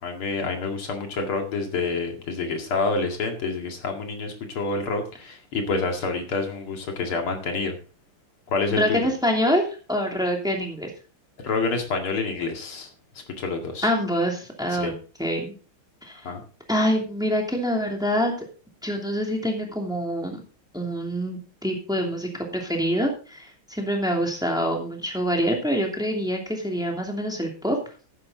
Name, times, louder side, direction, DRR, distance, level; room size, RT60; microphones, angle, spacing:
voice 1, 0.0-7.7 8.5-9.0 11.4-12.9 13.4-13.9 14.7-14.9 16.2-16.4, left 3 dB, 85° left, 3 dB, 3.1 m, -28 dB
voice 2, 8.7-9.6 9.9-10.9 13.8-14.9 15.2-15.5 16.0-16.2 16.7-18.3 18.8-20.4 20.7-27.8, equal, ahead, 1 dB, 2.6 m, -25 dB
13.0 x 10.5 x 3.9 m, 0.36 s
omnidirectional pair, 2.3 m